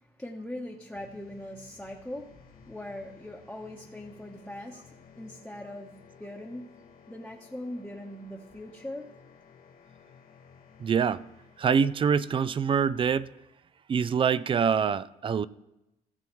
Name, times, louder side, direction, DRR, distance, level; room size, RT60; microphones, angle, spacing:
voice 1, 0.0-6.7 7.1-9.1, left 1 dB, 5° left, 1.0 m, -41 dB
sound 1, 0.9-12.0, left 6 dB, 60° left, 1.5 m, -55 dB
voice 2, 10.8-11.2 11.6-13.3 13.9-15.5, right 6 dB, 30° right, 0.3 m, -25 dB
18.0 x 7.0 x 3.1 m
cardioid pair, 110°, 17 cm